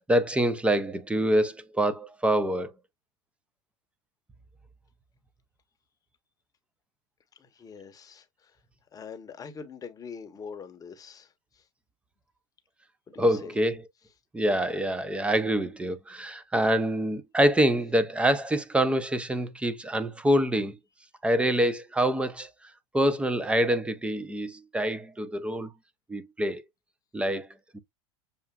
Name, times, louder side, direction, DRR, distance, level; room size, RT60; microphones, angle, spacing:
voice 1, 0.0-2.7 13.2-13.8 14.3-20.8 21.2-22.5 22.9-25.7 26.1-26.6 27.1-27.5 27.7-27.8, right 1 dB, 5° right, 0.5 m, -25 dB
voice 2, 7.3-8.6 8.9-11.7 13.1-13.6, left 6 dB, 25° left, 0.9 m, -44 dB
6.8 x 2.4 x 2.2 m
supercardioid pair, 110°, 15 cm